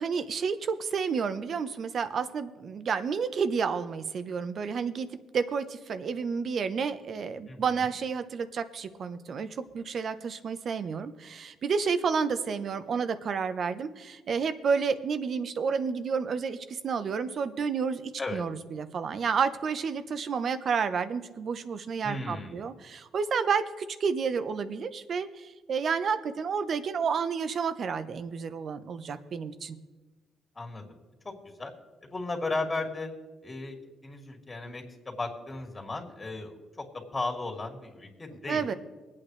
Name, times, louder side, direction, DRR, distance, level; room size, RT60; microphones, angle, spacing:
voice 1, 0.0-5.1 5.3-29.8 38.5-38.7, right 6 dB, 55° right, 11 dB, 0.9 m, -30 dB
voice 2, 7.5-7.9 18.2-18.4 22.0-22.6 30.6-30.8 31.2-31.7 32.0-33.1 33.4-33.8 34.0-36.5 36.9-38.8, left 2 dB, 25° left, 1 dB, 2.6 m, -35 dB
23.5 x 8.6 x 3.3 m, 1.3 s
cardioid pair, 90°, 0 cm